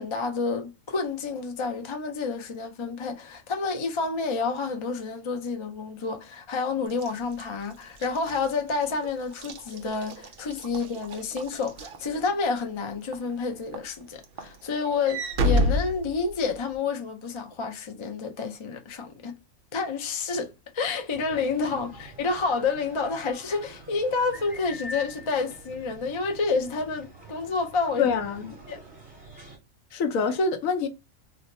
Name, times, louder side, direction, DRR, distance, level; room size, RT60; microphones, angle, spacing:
voice 1, 0.0-19.4 19.7-28.1 28.7-28.8, left 4 dB, 45° left, 0.3 m, -29 dB
Walk footsteps / Slam, 6.9-12.6 13.1-13.4 13.7-16.7, left 1 dB, 65° right, 0.6 m, -30 dB
sound 1, 21.1-29.6, equal, 20° right, 1.2 m, -45 dB
voice 2, 28.0-28.5 29.9-30.9, left 5 dB, 80° left, 1.1 m, -25 dB
2.7 x 2.1 x 4.1 m
omnidirectional pair, 1.4 m